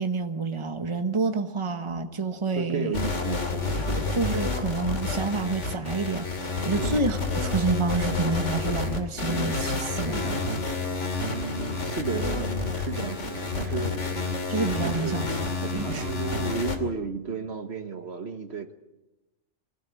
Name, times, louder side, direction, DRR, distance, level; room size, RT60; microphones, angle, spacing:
voice 1, 0.0-3.0 4.1-10.4 14.5-15.3 15.7-16.1, right 3 dB, 25° right, 7 dB, 1.4 m, -28 dB
voice 2, 2.6-4.1 6.7-7.0 11.3-14.0 14.8-15.3 15.6-18.7, right 5 dB, 55° right, 8 dB, 1.5 m, -33 dB
sound 1, 2.9-16.8, left 3 dB, 75° left, 2.8 m, -29 dB
24.5 x 16.0 x 9.4 m, 0.98 s
omnidirectional pair, 1.3 m